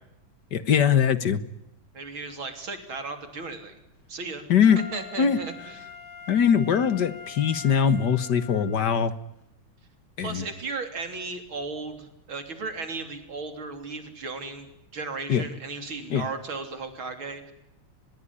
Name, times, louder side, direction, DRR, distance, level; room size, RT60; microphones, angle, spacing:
voice 1, 0.5-1.4 4.5-4.8 5.2-5.4 6.3-9.1 10.2-10.4 15.3-15.4 16.1-16.2, left 7 dB, 55° left, 14 dB, 1.8 m, -21 dB
voice 2, 1.9-3.7 4.1-4.4 4.8-5.8 10.2-17.5, right 3 dB, 70° right, 7 dB, 4.2 m, -35 dB
Wind instrument woodwind instrument, 4.6-8.9 9.4-9.5, left 5 dB, 85° left, 8.2 m, -43 dB
24.0 x 21.5 x 9.9 m, 0.82 s
omnidirectional pair, 2.3 m